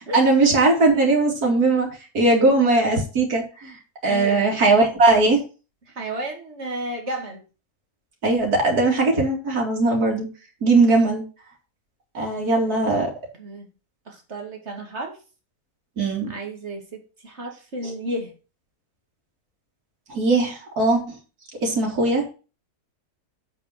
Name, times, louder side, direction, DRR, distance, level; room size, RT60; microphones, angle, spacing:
voice 1, 0.1-1.9 2.1-3.8 4.0-5.4 8.2-10.3 10.6-11.2 12.1-13.1 16.0-16.3 20.1-21.0 21.6-22.3, right 3 dB, 75° right, -1 dB, 3.2 m, -19 dB
voice 2, 4.1-4.4 5.9-7.4 10.9-11.0 12.6-13.1 13.4-13.7 14.1-15.2 16.2-18.3, right 1 dB, 45° right, 2 dB, 2.5 m, -33 dB
8.2 x 5.6 x 5.8 m, 0.33 s
omnidirectional pair, 1.6 m